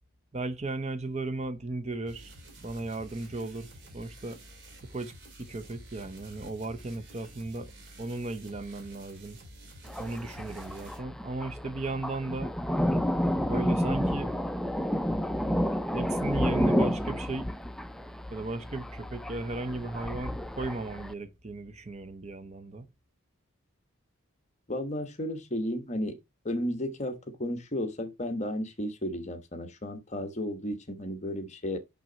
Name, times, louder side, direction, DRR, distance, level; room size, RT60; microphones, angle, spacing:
voice 1, 0.3-2.3 2.6-4.4 4.8-5.1 5.4-7.7 8.0-9.4 10.0-12.5 13.5-14.3 15.9-17.5 18.3-22.9, right 2 dB, 30° right, 0.7 m, -36 dB
sound 1, 2.1-11.0, right 1 dB, 55° right, 2.7 m, -50 dB
Thunder, 9.8-21.1, equal, ahead, 0.3 m, -30 dB
voice 2, 24.7-26.2 26.4-31.8, left 1 dB, 30° left, 1.1 m, -33 dB
6.1 x 6.0 x 3.9 m
head